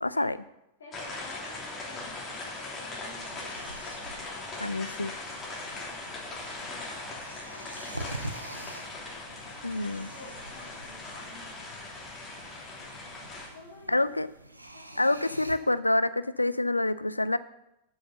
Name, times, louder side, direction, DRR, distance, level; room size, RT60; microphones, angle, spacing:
voice 1, 0.0-0.4 4.6-5.1 9.6-10.1 13.9-14.3 15.0-17.4, left 2 dB, 85° left, 16 dB, 0.3 m, -27 dB
voice 2, 0.8-4.0 6.7-8.9 10.1-11.5 13.5-14.3 14.7-15.1, left 1 dB, 70° left, -6 dB, 2.7 m, -51 dB
sound 1, 0.9-13.5, left 2 dB, 20° left, 3.0 m, -40 dB
sound 2, 3.1-15.6, right 1 dB, 85° right, 0.7 m, -46 dB
8.0 x 6.4 x 6.8 m, 0.87 s
figure-of-eight pair, 90°, 0 cm